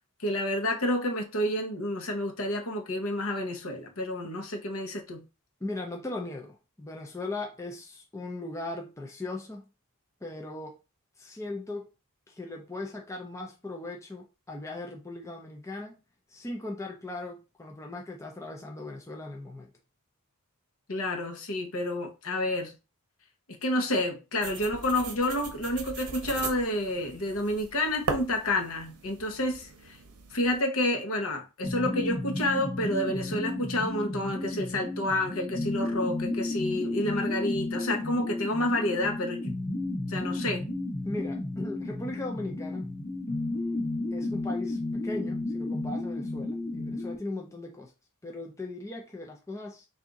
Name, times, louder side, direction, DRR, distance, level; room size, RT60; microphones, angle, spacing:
voice 1, 0.2-5.2 20.9-22.7 23.6-30.0 30.3-39.5 40.1-40.6, left 1 dB, 65° left, 0.9 m, -29 dB
voice 2, 5.6-9.6 10.2-10.8 11.2-11.9 12.3-16.0 16.3-19.7 41.0-42.9 44.1-47.9 48.2-49.9, left 2 dB, 15° left, 0.5 m, -38 dB
sound 1, 24.4-30.6, right 5 dB, 80° right, 0.7 m, -39 dB
sound 2, 31.6-47.2, left 2 dB, 40° left, 1.0 m, -33 dB
3.6 x 2.6 x 3.9 m
head